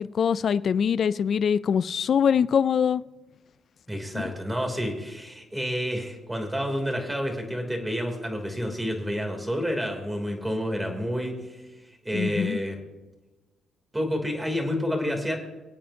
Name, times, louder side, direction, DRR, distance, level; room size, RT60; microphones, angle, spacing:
voice 1, 0.0-3.0 12.1-12.6, left 7 dB, 55° left, 17 dB, 0.4 m, -23 dB
voice 2, 3.9-11.6 12.0-12.8 13.9-15.4, equal, 10° right, 3 dB, 3.1 m, -29 dB
25.0 x 8.6 x 2.8 m, 1.2 s
cardioid pair, 90°, 0 cm